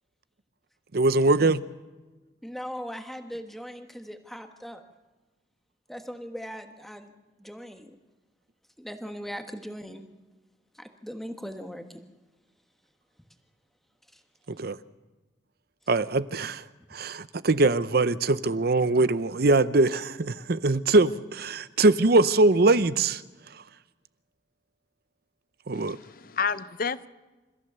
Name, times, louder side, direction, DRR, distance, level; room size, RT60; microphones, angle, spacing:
voice 1, 0.9-1.6 14.6-14.8 15.9-16.6 16.9-23.2 25.7-26.0, right 2 dB, 55° right, 0.7 m, -22 dB
voice 2, 2.4-4.8 5.9-7.1 7.4-8.0 8.8-10.0 10.7-11.9 14.1-14.2, equal, ahead, 1.3 m, -39 dB
voice 3, 25.7-27.1, left 5 dB, 50° left, 0.7 m, -30 dB
28.5 x 14.5 x 6.8 m
head